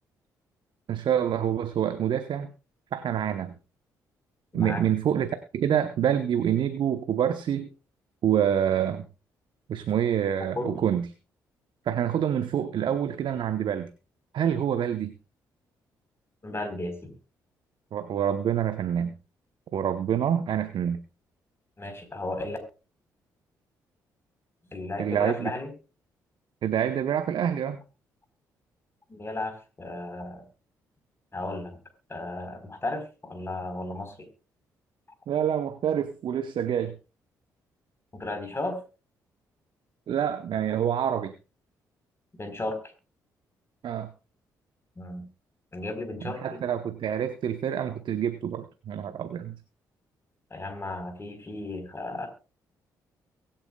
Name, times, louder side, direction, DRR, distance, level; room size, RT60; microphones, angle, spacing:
voice 1, 0.9-2.5 2.9-3.5 4.5-7.7 8.2-9.0 9.7-11.1 11.9-13.9 14.3-15.1 17.9-19.1 19.7-21.0 25.0-25.5 26.6-27.8 35.3-36.9 40.1-41.3 43.8-44.1 46.2-49.6, right 9 dB, 60° right, 10 dB, 1.0 m, -27 dB
voice 2, 4.5-4.8 10.5-10.8 16.4-17.1 21.8-22.6 24.7-25.7 29.1-30.4 31.3-31.8 32.1-34.3 38.1-38.8 42.3-42.8 45.0-45.3 45.7-46.6 50.5-52.3, left 2 dB, 25° left, 5 dB, 4.2 m, -34 dB
23.0 x 8.9 x 2.3 m, 0.32 s
hypercardioid pair, 45°, 9 cm